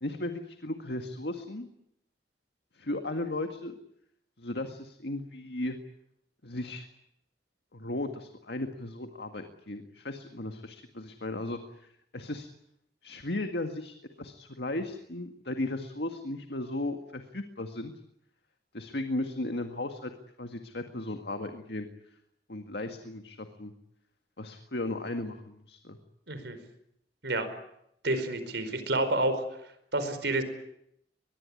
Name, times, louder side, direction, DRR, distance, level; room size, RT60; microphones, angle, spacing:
voice 1, 0.0-1.7 2.7-3.8 4.4-5.8 6.4-6.9 7.7-12.5 13.0-17.9 18.7-20.1 20.4-21.9 22.5-23.7 24.4-26.0, left 2 dB, 65° left, 6 dB, 2.0 m, -36 dB
voice 2, 28.0-29.4 29.9-30.4, right 2 dB, 75° right, 10 dB, 4.8 m, -29 dB
23.5 x 21.5 x 9.8 m, 0.77 s
head